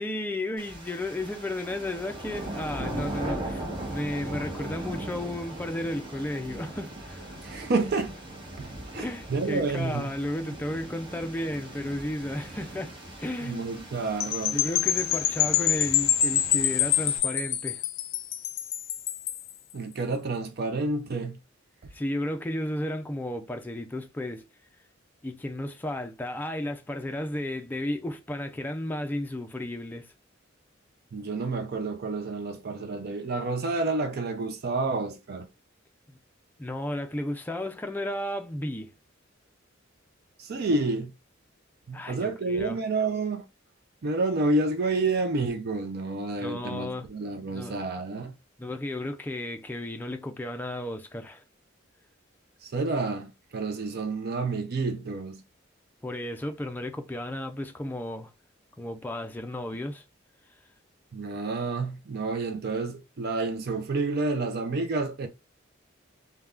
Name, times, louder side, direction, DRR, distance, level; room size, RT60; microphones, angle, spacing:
voice 1, 0.0-7.4 9.0-13.7 14.5-17.8 21.9-24.5 25.2-30.1 36.1-36.2 36.6-38.9 41.9-42.8 46.4-47.1 47.5-47.8 48.6-51.4 56.0-58.3 58.8-60.0, left 1 dB, 10° left, 0.4 m, -33 dB
sound 1, 0.6-17.2, right 1 dB, 25° right, 1.0 m, -39 dB
voice 2, 7.4-8.1 8.6-10.1 13.4-14.6 19.7-21.4 31.1-35.5 40.4-41.1 41.9-43.4 44.0-48.3 52.6-55.4 61.1-65.3, right 3 dB, 55° right, 0.4 m, -29 dB
sound 2, 14.2-19.5, left 11 dB, 70° left, 0.5 m, -26 dB
3.4 x 2.2 x 2.3 m
head